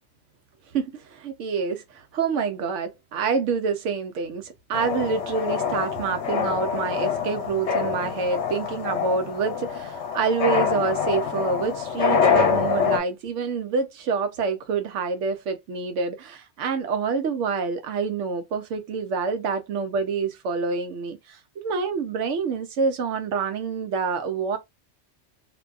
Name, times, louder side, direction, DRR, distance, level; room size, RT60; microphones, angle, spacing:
voice 1, 0.7-24.6, right 5 dB, 90° right, 1.0 m, -27 dB
sound 1, 4.7-13.0, left 6 dB, 70° left, 0.9 m, -25 dB
2.6 x 2.3 x 2.4 m
omnidirectional pair, 1.2 m